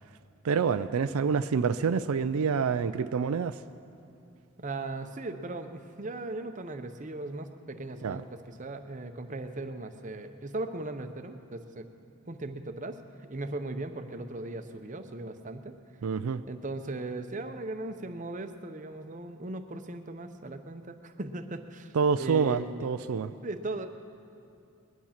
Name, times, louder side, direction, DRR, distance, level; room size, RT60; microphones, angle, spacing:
voice 1, 0.4-3.6 8.0-8.2 16.0-16.4 21.9-23.3, right 5 dB, 80° right, 12 dB, 0.4 m, -27 dB
voice 2, 4.6-11.9 12.3-13.0 13.3-15.7 16.5-22.9 23.4-23.9, right 2 dB, 35° right, 8 dB, 0.8 m, -38 dB
21.0 x 11.0 x 5.8 m, 2.6 s
head